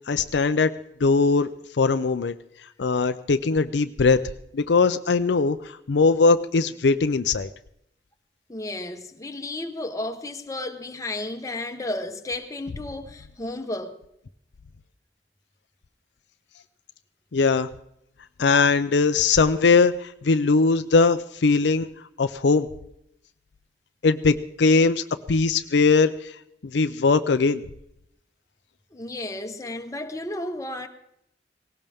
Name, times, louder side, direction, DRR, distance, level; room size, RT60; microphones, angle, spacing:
voice 1, 0.1-0.7 1.0-1.5 1.8-2.4 2.8-4.2 4.5-5.6 5.9-7.5 17.3-17.7 18.4-21.9 22.2-22.7 24.0-26.3 26.7-27.6, left 4 dB, 70° left, 0.5 m, -20 dB
voice 2, 8.5-14.0 28.9-30.9, left 2 dB, 20° left, 1.1 m, -33 dB
18.5 x 17.5 x 3.5 m
head